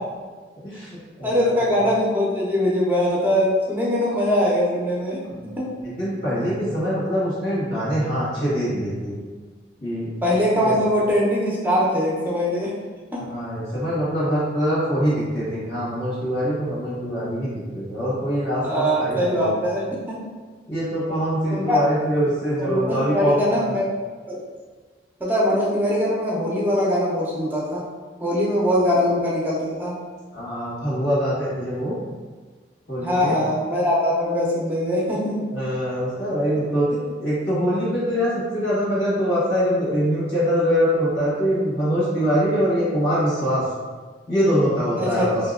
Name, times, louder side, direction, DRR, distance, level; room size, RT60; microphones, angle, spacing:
voice 1, 0.6-1.6 5.3-5.4 5.8-9.2 9.8-10.1 10.6-10.7 13.2-19.5 20.7-23.6 30.3-31.9 32.9-33.3 35.5-43.7 44.3-45.3, equal, 75° left, -9 dB, 1.5 m, -23 dB
voice 2, 1.2-5.2 5.6-5.7 10.2-12.7 13.1-13.2 18.6-20.2 21.5-21.8 22.6-23.9 24.3-24.4 25.2-27.8 28.2-29.9 33.0-35.4 44.9-45.3, equal, 10° right, -5 dB, 0.5 m, -22 dB
2.8 x 2.7 x 2.4 m, 1.4 s
head